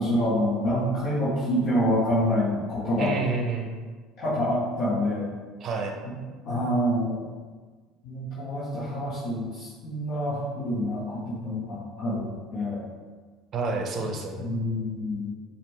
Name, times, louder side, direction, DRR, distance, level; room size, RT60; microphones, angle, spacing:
voice 1, 0.0-3.1 4.2-5.3 6.0-6.2 6.4-7.3 8.0-12.9 14.4-15.3, equal, 55° left, -10 dB, 1.2 m, -27 dB
voice 2, 3.0-3.8 5.6-6.0 13.5-14.5, right 4 dB, 45° right, 3 dB, 0.6 m, -29 dB
4.9 x 2.5 x 3.3 m, 1.4 s
hypercardioid pair, 65°, 0 cm